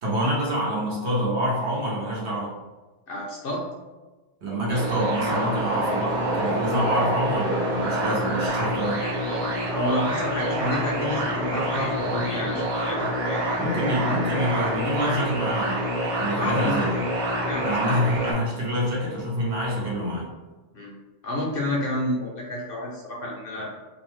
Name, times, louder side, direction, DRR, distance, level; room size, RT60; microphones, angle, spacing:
voice 1, 0.0-2.5 4.4-9.0 13.6-15.9 16.2-17.0 17.6-20.3, right 1 dB, 70° right, -5 dB, 1.1 m, -26 dB
voice 2, 3.1-3.7 9.0-13.4 16.3-16.8 17.5-17.9 20.7-21.0 21.2-23.7, left 1 dB, 60° left, -3 dB, 0.7 m, -30 dB
sound 1, 4.7-18.3, equal, 90° right, 1.2 m, -27 dB
2.6 x 2.1 x 3.1 m, 1.2 s
omnidirectional pair, 1.2 m